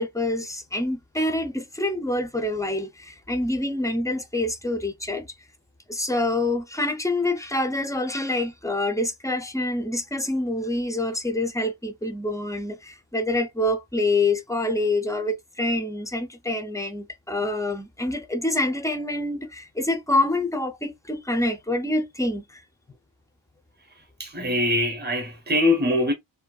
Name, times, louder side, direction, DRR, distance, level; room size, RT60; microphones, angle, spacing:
voice 1, 0.0-5.3 5.9-22.6, left 2 dB, 5° left, 0.4 m, -26 dB
voice 2, 24.2-26.1, left 1 dB, 20° right, 0.7 m, -23 dB
2.6 x 2.2 x 2.2 m
wide cardioid pair, 55°, 48 cm